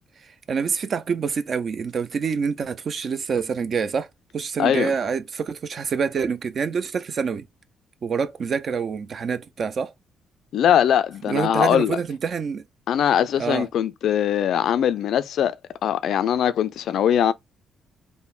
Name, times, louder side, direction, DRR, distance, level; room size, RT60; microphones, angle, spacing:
voice 1, 0.2-4.1 4.3-7.5 8.0-9.9 11.3-12.6 13.4-13.7, right 6 dB, 50° right, 0.4 m, -26 dB
voice 2, 4.6-4.9 10.5-12.0 12.9-15.5 15.8-17.3, left 9 dB, 70° left, 0.3 m, -21 dB
3.7 x 2.1 x 2.3 m
cardioid pair, 90°, 0 cm